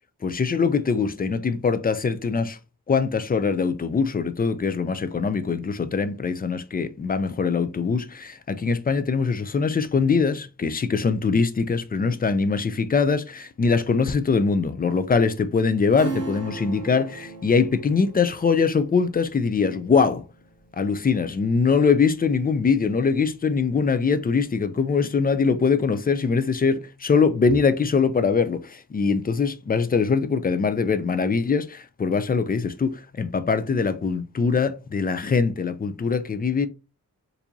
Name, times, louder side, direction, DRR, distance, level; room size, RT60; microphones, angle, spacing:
voice 1, 0.2-2.6 2.9-20.2 20.8-36.7, left 5 dB, 25° left, 0.3 m, -22 dB
Acoustic guitar / Strum, 16.0-22.2 22.6-22.7, right 4 dB, 45° right, 1.8 m, -38 dB
4.4 x 2.6 x 2.6 m
wide cardioid pair, 130°, 34 cm